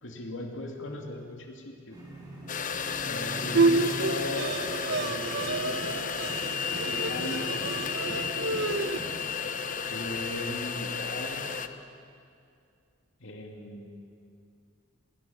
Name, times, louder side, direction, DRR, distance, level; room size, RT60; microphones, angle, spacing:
voice 1, 0.0-2.0 3.0-4.6 4.9-6.6 6.8-8.8 9.9-11.6 13.2-14.1, left 1 dB, 65° left, 2 dB, 2.8 m, -39 dB
sound 1, 1.9-11.5, right 1 dB, 20° right, 7.5 m, -44 dB
sound 2, 2.5-11.7, left 6 dB, 40° left, 0.9 m, -33 dB
Bowed string instrument, 3.5-9.0, right 3 dB, 60° right, 0.9 m, -29 dB
25.5 x 21.0 x 7.2 m, 2.4 s
head